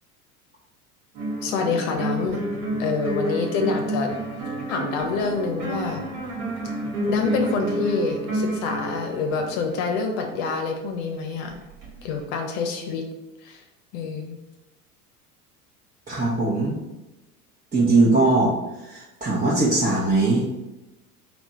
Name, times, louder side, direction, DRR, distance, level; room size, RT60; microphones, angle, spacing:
sound 1, 1.1-10.1 11.4-12.2, right 1 dB, 60° right, 1.5 m, -30 dB
voice 1, 1.4-2.4 2.8-4.1 4.7-6.1 7.1-11.6 12.0-13.0 13.4-13.6 13.9-14.4, left 4 dB, 60° left, 4 dB, 0.8 m, -27 dB
voice 2, 16.1-16.8 17.7-20.4, right 2 dB, 20° right, -6 dB, 0.9 m, -20 dB
3.3 x 3.2 x 4.0 m, 1.0 s
hypercardioid pair, 80°, 45 cm